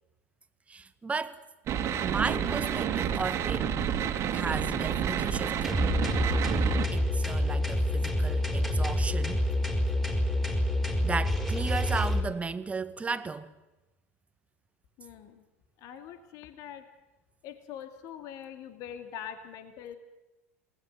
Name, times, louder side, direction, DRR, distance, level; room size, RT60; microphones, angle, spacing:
voice 1, 0.7-1.4 2.0-3.7 4.3-5.8 6.9-9.4 11.0-13.5, right 4 dB, 15° right, 1.6 m, -34 dB
sound 1, 1.7-6.9, right 8 dB, 40° right, 2.7 m, -29 dB
sound 2, 5.6-12.2, left 1 dB, 5° left, 5.2 m, -27 dB
voice 2, 15.0-15.4 15.8-16.8 17.4-20.0, left 9 dB, 50° left, 2.3 m, -43 dB
28.0 x 20.0 x 9.3 m
figure-of-eight pair, 80°, 8 cm